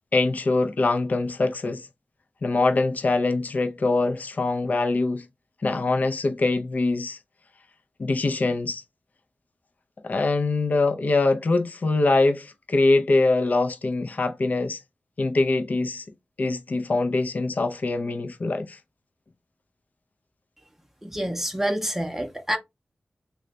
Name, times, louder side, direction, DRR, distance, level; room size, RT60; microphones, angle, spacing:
voice 1, 0.1-1.9 2.4-5.2 5.6-7.2 8.0-8.8 10.0-14.8 15.2-16.0 16.4-18.8, left 3 dB, 50° left, 0.4 m, -23 dB
voice 2, 21.0-22.6, equal, 10° right, 0.6 m, -27 dB
3.2 x 2.1 x 3.7 m
wide cardioid pair, 65°, 3 cm